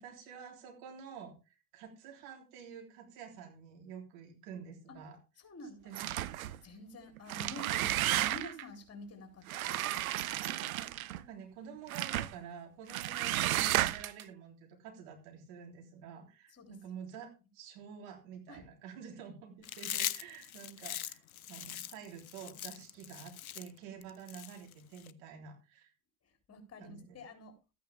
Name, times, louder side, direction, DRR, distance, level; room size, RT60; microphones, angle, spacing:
voice 1, 0.0-5.2 5.8-6.3 10.4-10.9 11.1-21.2 21.5-25.9 26.8-27.2, right 7 dB, 65° right, 1 dB, 3.6 m, -49 dB
voice 2, 5.4-5.9 6.6-9.9 16.5-16.8 18.5-18.7 26.5-27.6, left 1 dB, 35° left, 4 dB, 3.9 m, -49 dB
sound 1, 5.9-6.6 7.2-8.6 9.5-11.2 11.9-12.3 12.9-14.2, right 14 dB, 85° right, 0.6 m, -33 dB
Chewing mastication, 19.6-25.1, left 10 dB, 85° left, 0.6 m, -40 dB
14.0 x 9.3 x 3.5 m, 0.30 s
figure-of-eight pair, 60°, 41 cm